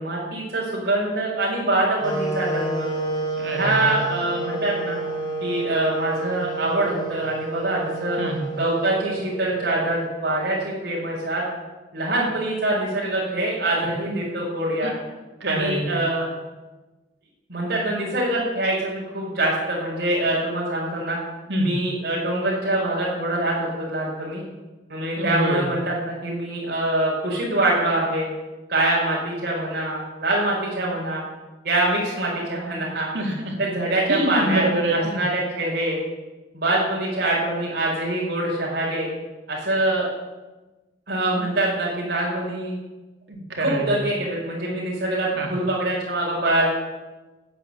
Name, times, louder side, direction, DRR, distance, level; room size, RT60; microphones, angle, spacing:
voice 1, 0.0-2.9 3.5-5.0 5.4-8.2 8.5-11.4 11.9-15.0 15.5-16.3 17.5-21.2 21.6-24.4 24.9-28.3 28.7-31.2 31.6-33.1 33.6-34.7 34.9-36.0 36.5-39.1 39.5-40.0 41.1-42.7 43.6-46.7, right 1 dB, 60° right, -7 dB, 5.3 m, -24 dB
sound 1, 2.0-10.0, right 3 dB, 25° left, 3.4 m, -30 dB
voice 2, 3.4-3.9 8.2-8.4 13.8-14.2 15.4-16.0 21.5-21.7 25.2-25.7 33.1-33.6 34.1-35.2 43.3-44.0 45.4-45.5, right 1 dB, 85° right, 1 dB, 3.7 m, -25 dB
13.5 x 9.6 x 8.9 m, 1.2 s
head